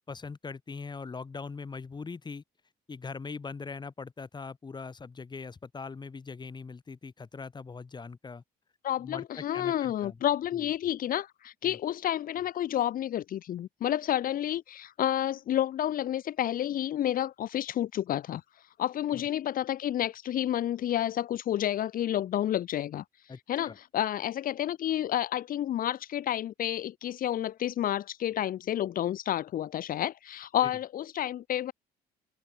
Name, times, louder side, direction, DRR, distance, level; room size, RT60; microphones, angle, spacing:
voice 1, 0.0-2.4 2.9-8.4 9.0-10.2 10.5-10.6 11.6-11.8 19.1-19.2 23.3-23.4 23.6-23.8 30.6-30.7, left 4 dB, 25° left, 5.9 m, -41 dB
voice 2, 8.8-31.7, left 11 dB, 55° left, 1.5 m, -30 dB
cardioid pair, 110°, 17 cm